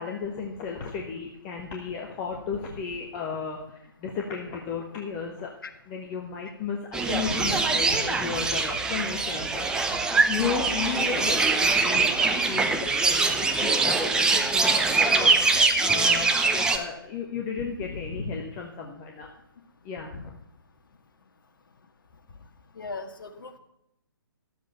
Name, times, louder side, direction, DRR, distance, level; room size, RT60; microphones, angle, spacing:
voice 1, 0.0-5.5 5.9-9.6 10.1-15.3 15.8-19.3 19.8-20.3, left 6 dB, 25° left, 0 dB, 1.2 m, -34 dB
sound 1, 6.9-16.8, right 3 dB, 5° right, 0.6 m, -23 dB
voice 2, 22.8-23.6, left 3 dB, 60° left, 6 dB, 1.6 m, -36 dB
12.5 x 7.8 x 5.6 m, 0.79 s
figure-of-eight pair, 130°, 13 cm